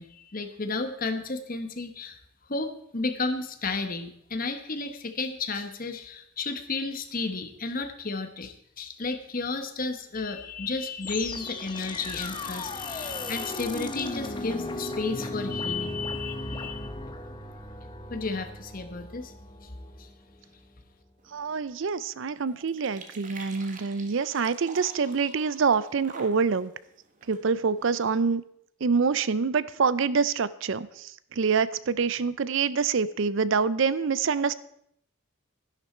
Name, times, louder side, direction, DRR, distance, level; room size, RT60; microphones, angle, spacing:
voice 1, 0.0-2.2 2.5-16.9 18.1-19.3 20.0-20.1, left 3 dB, 40° left, 8 dB, 1.1 m, -32 dB
sound 1, 11.0-20.2, left 2 dB, 20° left, 0.9 m, -36 dB
sound 2, 21.2-28.4, right 4 dB, 35° right, 1.4 m, -49 dB
voice 2, 21.3-26.7 27.3-28.4 28.8-34.5, right 5 dB, 60° right, 17 dB, 0.5 m, -26 dB
12.5 x 11.0 x 4.4 m, 0.72 s
head